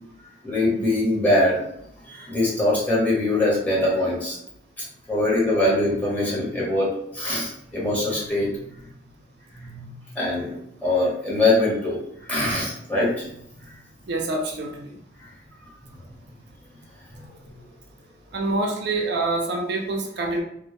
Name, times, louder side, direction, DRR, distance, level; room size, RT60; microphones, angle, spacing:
voice 1, 0.4-1.6 2.1-4.4 5.1-6.9 7.1-8.5 9.6-9.9 10.2-10.5 10.8-12.0 12.3-13.3, left 1 dB, 10° left, -7 dB, 0.8 m, -22 dB
voice 2, 14.1-14.9 18.3-20.4, right 2 dB, 65° right, 1 dB, 0.4 m, -26 dB
2.1 x 2.0 x 2.9 m, 0.74 s
head